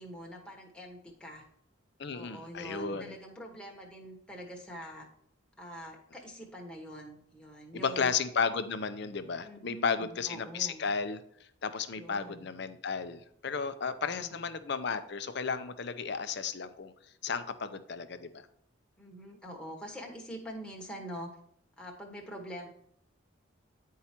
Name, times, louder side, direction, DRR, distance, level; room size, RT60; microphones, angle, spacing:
voice 1, 0.0-1.4 2.1-5.1 5.6-8.1 9.4-10.8 12.0-12.4 14.0-14.4 19.0-21.3 21.8-22.7, equal, 5° left, -1 dB, 1.2 m, -44 dB
voice 2, 2.0-3.2 7.7-16.9 17.2-18.5, left 5 dB, 60° left, 10 dB, 0.6 m, -34 dB
9.7 x 4.7 x 4.3 m, 0.66 s
head